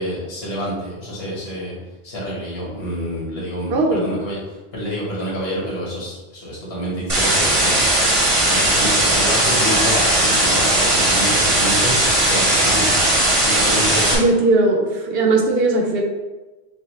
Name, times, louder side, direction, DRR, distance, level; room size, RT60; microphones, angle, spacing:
voice 1, 0.0-1.7 2.0-4.4 4.7-7.8 8.5-14.1, equal, 65° left, -5 dB, 1.6 m, -27 dB
voice 2, 3.7-4.1 14.1-16.0, right 2 dB, 65° right, 1 dB, 0.8 m, -18 dB
sound 1, 7.1-14.1, right 1 dB, 30° right, 0.9 m, -17 dB
6.0 x 2.3 x 3.0 m, 1.2 s
omnidirectional pair, 1.1 m